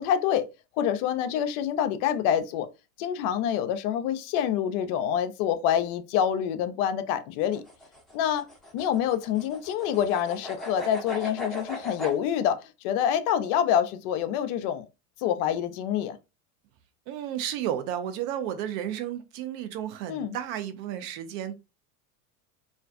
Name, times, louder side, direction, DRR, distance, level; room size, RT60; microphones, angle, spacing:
voice 1, 0.0-2.7 3.0-7.6 8.1-8.5 8.7-14.9 15.2-16.2 20.1-20.4, left 9 dB, 55° left, 0.5 m, -26 dB
sound 1, 7.4-12.2, left 1 dB, ahead, 0.7 m, -38 dB
voice 2, 17.1-21.5, right 10 dB, 55° right, 0.6 m, -32 dB
2.4 x 2.2 x 2.4 m
hypercardioid pair, 90°, 46 cm